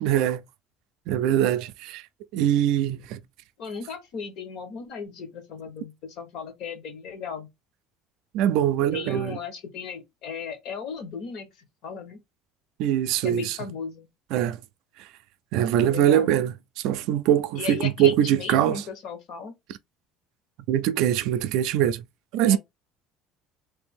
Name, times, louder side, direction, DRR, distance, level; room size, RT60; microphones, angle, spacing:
voice 1, 0.0-0.4 1.1-2.0 2.3-3.2 8.3-9.4 12.8-13.6 14.3-14.6 15.0-15.1 15.5-18.8 20.7-22.0 22.3-22.6, right 11 dB, 60° right, 0.4 m, -23 dB
voice 2, 3.6-7.5 8.9-11.5 11.8-12.2 13.2-14.1 15.8-16.3 17.6-19.5 22.5-22.6, left 6 dB, 50° left, 1.0 m, -36 dB
3.3 x 2.6 x 3.5 m
cardioid pair, 175°, 0 cm